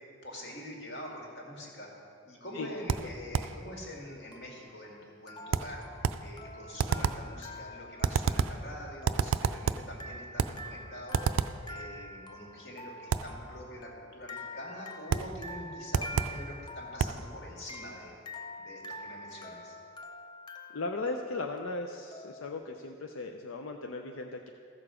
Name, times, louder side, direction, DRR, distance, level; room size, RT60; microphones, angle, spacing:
voice 1, 0.0-1.9 2.2-18.1 18.6-19.8, left 1 dB, 55° left, -1 dB, 2.1 m, -45 dB
sound 1, 2.6-3.0 4.3-22.5, left 1 dB, 20° left, 0.5 m, -47 dB
sound 2, 2.9-3.6 5.5-6.3 6.8-7.3 8.0-8.7 9.1-9.9 10.4-10.7 11.1-11.7 13.1-13.4 15.1-15.4 15.9-16.4 17.0-17.3, right 6 dB, 80° right, 0.3 m, -30 dB
voice 2, 20.7-24.5, left 3 dB, 90° left, 4 dB, 0.6 m, -37 dB
14.5 x 6.8 x 4.9 m, 2.3 s
head